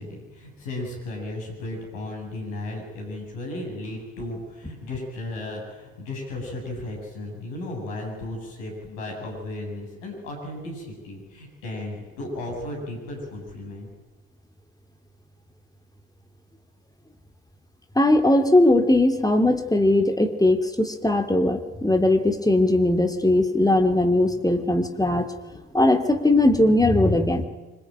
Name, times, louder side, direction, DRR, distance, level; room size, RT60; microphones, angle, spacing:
voice 1, 0.0-13.9, left 2 dB, 70° left, 1 dB, 7.9 m, -35 dB
voice 2, 17.9-27.5, left 1 dB, 10° left, 6 dB, 2.8 m, -20 dB
26.0 x 25.5 x 9.0 m, 1.2 s
figure-of-eight pair, 45°, 40 cm